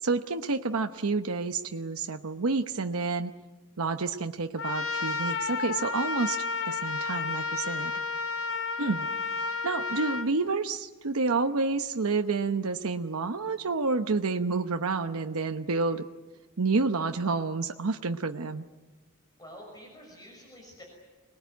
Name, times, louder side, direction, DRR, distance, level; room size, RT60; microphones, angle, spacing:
voice 1, 0.0-3.3 3.8-7.9 8.8-9.1 9.4-16.0 16.6-18.7, right 3 dB, 85° right, 6 dB, 0.9 m, -29 dB
Trumpet, 4.6-10.3, left 4 dB, 80° left, 1.9 m, -31 dB
voice 2, 19.4-20.8, equal, 20° left, 0 dB, 6.0 m, -48 dB
26.0 x 20.0 x 9.3 m, 1.3 s
head